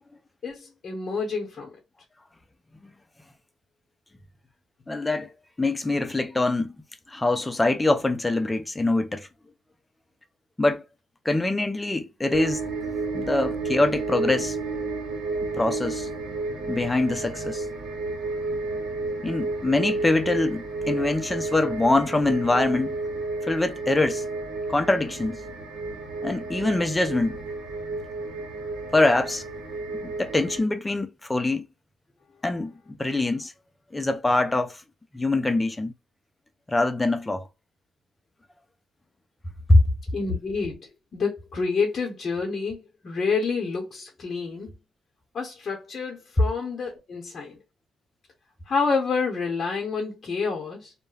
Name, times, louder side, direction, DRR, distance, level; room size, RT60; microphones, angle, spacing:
voice 1, 0.4-1.8 40.1-44.7 45.3-47.6 48.7-50.9, left 4 dB, 45° left, 0.7 m, -28 dB
voice 2, 4.9-5.3 5.6-6.7 7.1-9.3 10.6-10.8 11.3-12.7 13.1-14.6 15.6-16.1 16.7-17.6 19.2-23.0 23.4-24.3 24.7-25.4 26.2-27.4 28.9-29.4 30.0-31.6 32.4-32.7 33.0-33.5 33.9-34.8 35.1-35.9 36.7-37.5 39.7-39.8, left 2 dB, 15° left, 0.4 m, -24 dB
sound 1, 12.3-30.6, right 3 dB, 75° right, 1.0 m, -31 dB
2.2 x 2.1 x 3.1 m
cardioid pair, 90°, 0 cm